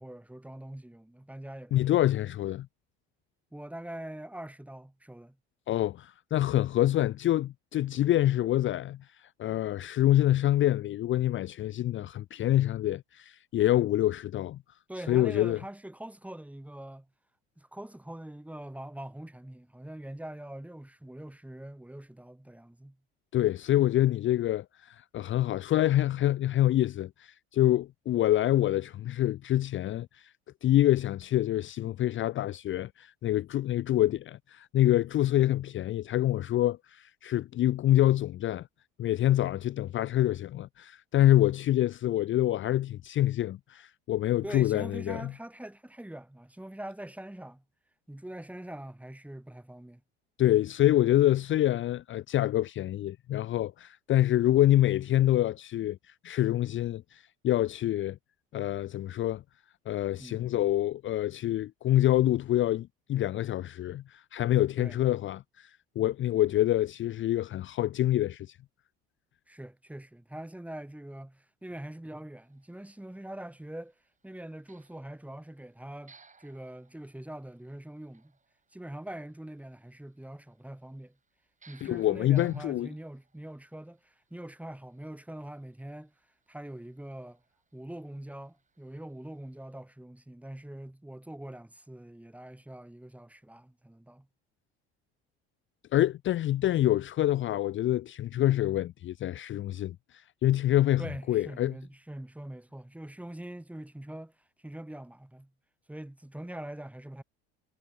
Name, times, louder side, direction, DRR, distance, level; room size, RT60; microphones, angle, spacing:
voice 1, 0.0-2.0 3.5-5.4 14.9-17.1 17.6-23.0 44.4-47.6 48.1-50.0 60.2-60.5 64.8-65.0 69.5-73.9 74.2-78.3 78.7-81.2 81.7-86.1 86.5-87.4 87.7-94.3 101.0-105.5 105.9-107.2, right 1 dB, 5° right, 3.1 m, -43 dB
voice 2, 1.7-2.7 5.7-14.6 15.1-15.6 23.3-30.3 30.6-38.7 39.0-45.3 50.4-58.2 58.5-59.4 59.9-68.6 81.8-82.9 95.9-101.8, left 13 dB, 40° left, 0.6 m, -26 dB
sound 1, 72.4-89.8, right 5 dB, 25° right, 5.8 m, -65 dB
supercardioid pair, 80°, 30 cm